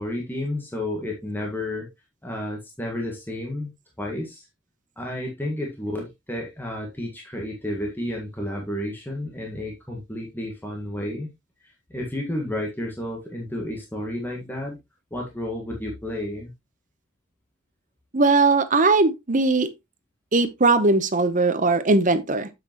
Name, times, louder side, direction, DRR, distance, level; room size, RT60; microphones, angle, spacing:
voice 1, 0.0-1.9 2.2-3.7 4.0-4.4 5.0-11.3 11.6-14.8 15.1-16.5, left 1 dB, 10° left, 1.6 m, -31 dB
voice 2, 18.1-19.7 20.3-22.5, right 3 dB, 40° right, 0.9 m, -19 dB
7.8 x 6.7 x 3.0 m
head